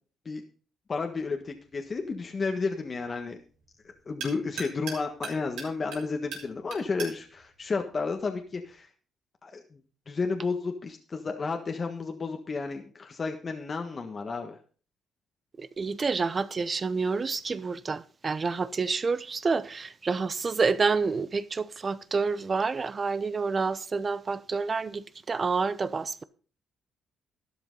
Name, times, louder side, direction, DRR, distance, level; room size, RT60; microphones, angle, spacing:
voice 1, 0.9-3.4 3.8-8.9 9.4-9.8 10.1-14.6, left 4 dB, 35° left, 1.5 m, -32 dB
sound 1, 1.1-8.7, right 5 dB, 85° right, 4.5 m, -44 dB
voice 2, 15.6-26.2, right 4 dB, 35° right, 0.8 m, -28 dB
12.5 x 11.0 x 3.9 m
cardioid pair, 90°, 0 cm